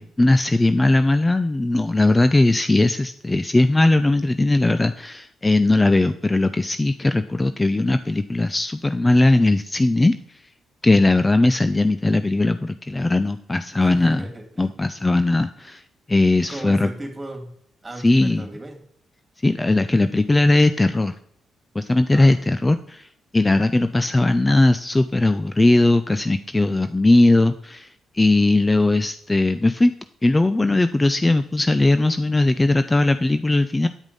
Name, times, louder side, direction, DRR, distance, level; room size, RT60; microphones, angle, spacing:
voice 1, 0.0-10.1 10.8-14.3 14.6-15.8 16.1-16.9 18.0-18.4 19.4-21.1 21.7-23.1 23.3-27.9 28.1-29.9 30.2-33.9, left 2 dB, 20° left, 11 dB, 0.5 m, -19 dB
voice 2, 13.8-14.7 16.5-17.5 17.8-18.8 22.1-22.4, right 1 dB, 25° right, 3 dB, 3.0 m, -36 dB
9.1 x 4.9 x 5.4 m, 0.66 s
supercardioid pair, 60°, 0 cm